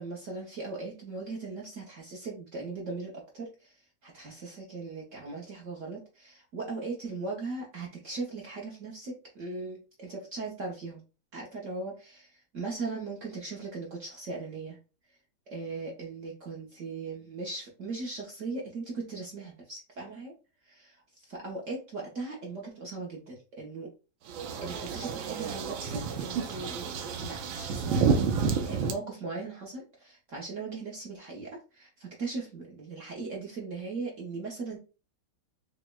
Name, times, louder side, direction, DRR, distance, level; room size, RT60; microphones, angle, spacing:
voice 1, 0.0-11.0 11.3-14.8 15.1-15.2 15.5-20.3 20.6-23.9 24.6-28.1 28.6-34.8, right 3 dB, 55° right, -2 dB, 0.9 m, -39 dB
sound 1, 24.3-28.9, right 5 dB, 80° right, 1.4 m, -30 dB
5.9 x 2.1 x 2.2 m, 0.33 s
omnidirectional pair, 2.2 m